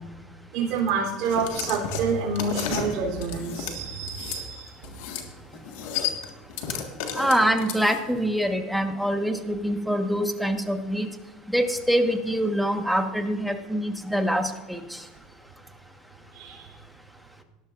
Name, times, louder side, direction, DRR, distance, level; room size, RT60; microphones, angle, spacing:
voice 1, 0.5-4.7 16.3-16.6, right 5 dB, 60° right, -2 dB, 3.3 m, -28 dB
sound 1, 1.2-4.4 4.8-5.3 5.5-8.2, left 8 dB, 80° left, 1.7 m, -32 dB
voice 2, 7.2-11.1 11.5-14.8, equal, ahead, 5 dB, 1.3 m, -25 dB
18.5 x 11.5 x 2.5 m, 1.2 s
supercardioid pair, 115°, 0 cm